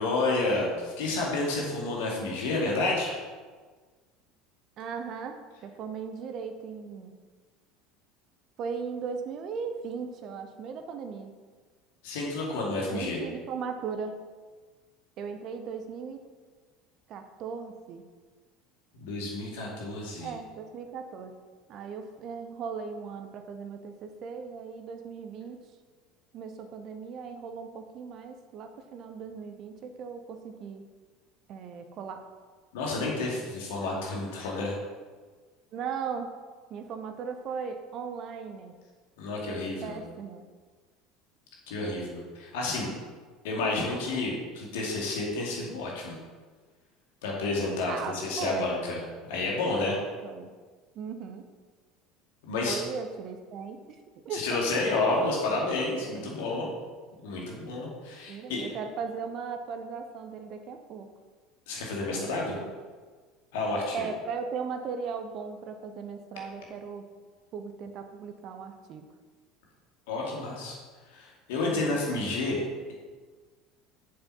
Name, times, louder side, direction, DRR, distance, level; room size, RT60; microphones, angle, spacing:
voice 1, 0.0-3.2 12.0-13.2 19.0-20.3 32.7-34.8 39.2-40.0 41.7-42.9 43.4-46.2 47.2-49.0 49.3-50.0 52.4-52.8 54.3-56.7 57.2-58.6 61.7-62.5 63.5-64.0 70.1-70.8 71.1-72.9, left 2 dB, 60° left, -2 dB, 2.4 m, -30 dB
voice 2, 4.8-7.1 8.6-11.3 12.9-14.2 15.2-16.2 17.1-18.0 20.2-21.4 21.7-25.6 26.3-30.8 31.5-32.2 35.7-36.3 36.7-38.7 39.5-40.4 41.8-42.1 47.9-48.8 50.2-50.5 50.9-51.5 52.7-54.0 54.2-54.8 56.0-56.8 58.3-61.1 62.1-62.8 63.9-67.1 67.5-69.1 71.6-72.0, right 6 dB, 45° right, 7 dB, 0.8 m, -38 dB
7.9 x 7.0 x 5.6 m, 1.5 s
figure-of-eight pair, 70°, 0 cm